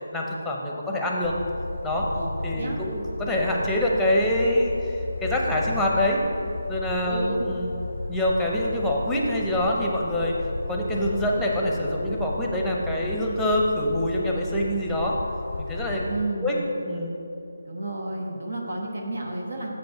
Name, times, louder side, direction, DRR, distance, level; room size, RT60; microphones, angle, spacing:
voice 1, 0.1-1.3 1.8-2.1 2.4-6.2 6.7-7.7 8.1-10.4 10.7-15.2 15.6-16.0 16.4-16.6 16.9-17.1, left 1 dB, ahead, -2 dB, 0.7 m, -25 dB
sound 1, 1.2-16.3, left 2 dB, 80° left, 0.4 m, -34 dB
voice 2, 2.1-2.8 7.0-7.4 16.0-16.6 17.6-19.7, right 2 dB, 75° right, 0 dB, 1.2 m, -31 dB
7.3 x 5.2 x 5.7 m, 2.9 s
figure-of-eight pair, 165°, 0 cm